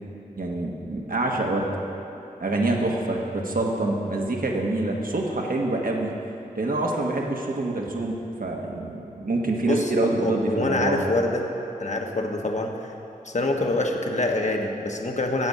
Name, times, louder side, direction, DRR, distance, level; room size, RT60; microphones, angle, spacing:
voice 1, 0.4-1.7 2.4-6.1 6.6-11.0, right 2 dB, 65° right, 0 dB, 1.5 m, -26 dB
voice 2, 9.6-11.4 11.8-12.7 13.2-15.5, left 2 dB, 50° left, 2 dB, 1.3 m, -25 dB
14.5 x 5.2 x 8.5 m, 2.9 s
cardioid pair, 50°, 16 cm